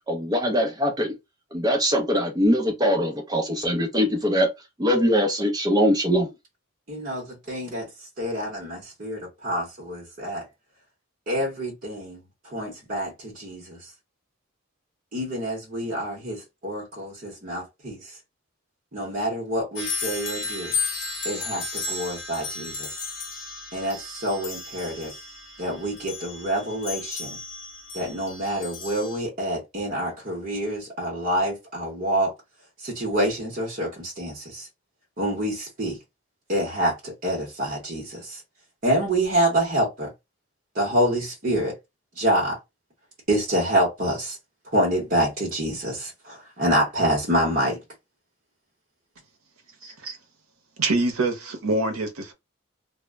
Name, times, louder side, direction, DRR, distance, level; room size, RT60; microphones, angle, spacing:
voice 1, 0.1-1.2 1.5-4.5 4.8-6.3, equal, 20° right, 0.5 m, -22 dB
voice 2, 6.9-10.5 11.3-13.9 15.1-18.2 18.9-20.7 21.2-23.0 23.7-25.1 25.6-27.4 27.9-32.3 32.8-34.7 35.2-36.0 36.5-38.4 38.8-40.1 40.7-41.8 42.2-42.6 43.3-44.4 44.7-47.8 49.8-49.9, right 1 dB, 40° right, 0.8 m, -27 dB
sound 1, 19.7-29.2, left 4 dB, 50° left, 0.8 m, -34 dB
voice 3, 50.8-52.3, right 2 dB, 85° right, 0.7 m, -25 dB
2.1 x 2.1 x 3.4 m
head